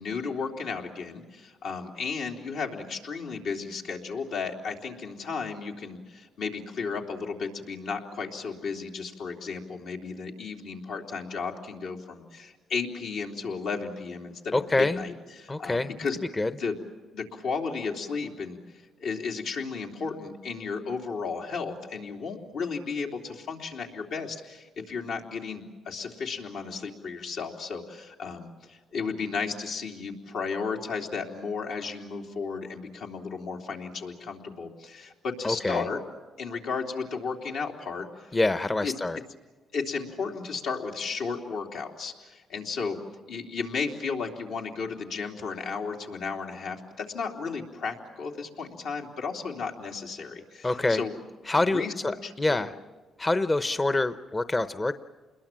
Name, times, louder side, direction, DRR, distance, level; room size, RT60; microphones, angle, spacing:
voice 1, 0.0-16.2 16.4-16.8 17.1-18.6 19.0-36.0 36.4-38.4 38.8-38.9 39.7-43.0 43.3-51.1 51.7-52.6, left 5 dB, 80° left, 1 dB, 3.3 m, -34 dB
voice 2, 14.5-15.1 15.5-15.9 16.4-16.5 35.4-35.9 38.3-39.2 50.6-51.0 51.5-52.7 53.2-54.9, left 2 dB, 25° left, 12 dB, 0.8 m, -26 dB
28.0 x 21.5 x 7.5 m, 1.4 s
cardioid pair, 90°, 0 cm